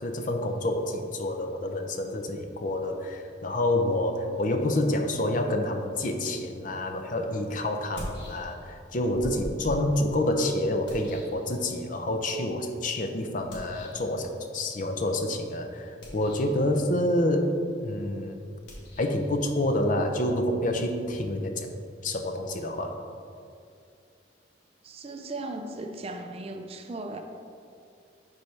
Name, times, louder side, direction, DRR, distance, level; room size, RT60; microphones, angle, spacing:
voice 1, 0.0-18.4 19.0-21.7 22.0-23.0, left 1 dB, 45° left, 5 dB, 0.6 m, -28 dB
sound 1, 7.9-8.8 9.1-12.0 13.5-14.1 15.9-16.6 18.6-21.2, equal, 75° left, 1.4 m, -43 dB
voice 2, 24.8-27.2, right 2 dB, 35° right, 5 dB, 0.5 m, -37 dB
11.0 x 4.2 x 3.3 m, 2.4 s
head